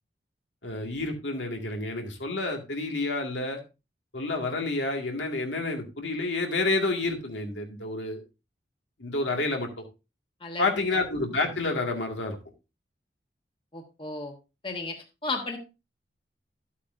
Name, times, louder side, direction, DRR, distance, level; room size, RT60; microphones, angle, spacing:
voice 1, 0.6-3.6 4.1-8.2 9.0-9.8 10.6-12.4, left 2 dB, 90° left, 2 dB, 2.1 m, -29 dB
voice 2, 10.4-11.0 13.7-14.3 14.6-15.6, left 3 dB, 30° left, 4 dB, 1.3 m, -34 dB
12.0 x 8.4 x 2.6 m, 0.28 s
head